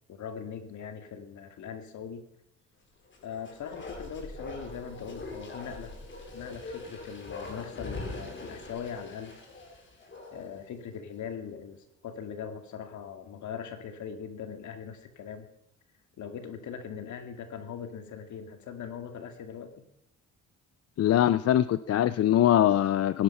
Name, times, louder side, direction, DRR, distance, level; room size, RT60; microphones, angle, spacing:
voice 1, 0.1-2.3 3.2-5.9 6.3-9.4 10.3-15.5 16.2-19.8, left 7 dB, 70° left, 8 dB, 2.3 m, -40 dB
Bark, 3.0-10.6 10.9-11.0, left 2 dB, 40° left, 4.2 m, -42 dB
voice 2, 21.0-23.2, left 11 dB, 55° left, 16 dB, 0.5 m, -22 dB
17.5 x 11.0 x 5.6 m, 0.81 s
cardioid pair, 90°, 30 cm